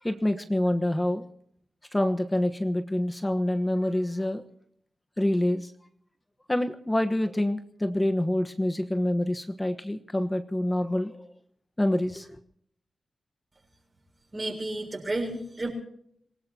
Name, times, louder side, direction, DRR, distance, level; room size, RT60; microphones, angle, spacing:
voice 1, 0.0-1.2 1.9-4.4 5.2-5.7 6.5-11.3 11.8-12.4, left 1 dB, 15° left, 7 dB, 1.2 m, -26 dB
voice 2, 14.3-15.7, right 2 dB, 30° right, 2 dB, 6.8 m, -31 dB
27.0 x 18.0 x 2.9 m, 0.70 s
cardioid pair, 80°, 0 cm